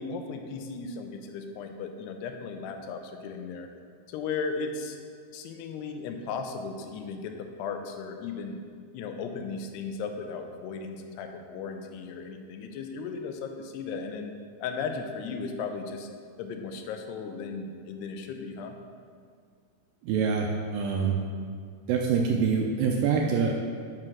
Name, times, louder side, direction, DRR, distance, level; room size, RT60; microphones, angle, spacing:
voice 1, 0.0-3.7 4.1-5.0 5.3-7.3 7.6-8.6 8.9-14.3 14.6-16.1 16.4-18.8, left 5 dB, 90° left, 5 dB, 2.8 m, -36 dB
voice 2, 20.0-21.2 21.9-23.5, right 6 dB, 80° right, 1 dB, 2.2 m, -25 dB
7.7 x 6.1 x 6.0 m, 2.1 s
omnidirectional pair, 4.6 m